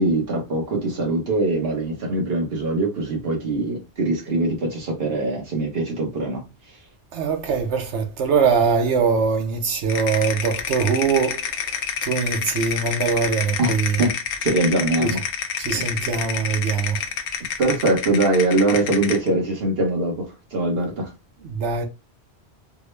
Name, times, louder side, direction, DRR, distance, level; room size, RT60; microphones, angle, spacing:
voice 1, 0.0-6.8 13.6-13.7 14.0-14.1 14.4-15.2 15.7-15.9 17.6-21.1, right 2 dB, 60° right, 1.4 m, -22 dB
voice 2, 7.1-14.0 15.0-15.1 15.6-17.0 21.4-21.8, right 5 dB, 80° right, 1.0 m, -22 dB
sound 1, 9.9-19.3, left 7 dB, 80° left, 0.9 m, -28 dB
3.5 x 2.1 x 3.1 m
omnidirectional pair, 1.2 m